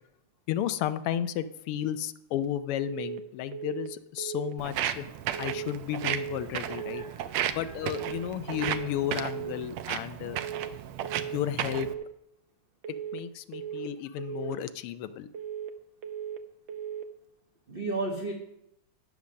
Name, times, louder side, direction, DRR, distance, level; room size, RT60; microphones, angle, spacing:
voice 1, 0.5-5.0 5.4-7.0 7.5-10.4 11.3-11.9 13.1-15.3, left 11 dB, 90° left, 13 dB, 1.6 m, -33 dB
sound 1, 2.8-3.2 3.5-3.9 4.2-4.6 5.3-5.7 6.0-6.4 6.7-7.1 7.8-8.2 8.5-8.9 9.2-9.6 10.3-10.7 11.0-11.4 11.7-12.1 12.8-13.2 13.5-13.9 14.2-14.6 15.3-15.7 16.0-16.4 16.7-17.1, right 9 dB, 65° right, 1.4 m, -37 dB
Walk footsteps, 4.6-11.9, right 10 dB, 80° right, 1.5 m, -34 dB
voice 2, 17.7-18.3, right 3 dB, 40° right, 1 dB, 0.9 m, -33 dB
9.5 x 7.1 x 6.3 m, 0.80 s
omnidirectional pair, 2.4 m